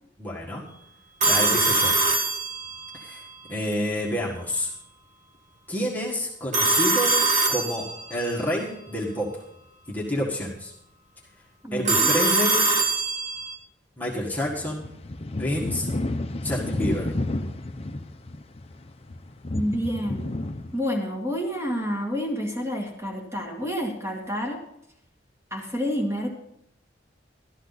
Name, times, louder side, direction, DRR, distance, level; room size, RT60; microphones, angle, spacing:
voice 1, 0.2-0.6 1.3-1.9 2.9-3.2 3.5-4.7 5.7-7.2 7.5-9.3 9.9-10.7 11.7-12.7 14.0-14.9 15.4-15.9 16.4-17.1, equal, 10° left, -5 dB, 1.8 m, -28 dB
Telephone, 1.2-3.0 6.5-8.2 11.9-13.6, right 3 dB, 40° right, 1.4 m, -22 dB
voice 2, 11.6-12.1 19.5-20.3 20.7-24.6 25.5-26.3, equal, 15° right, -1 dB, 2.2 m, -29 dB
sound 1, 14.2-20.8, left 2 dB, 35° left, 0.7 m, -31 dB
13.0 x 12.5 x 4.1 m, 0.78 s
head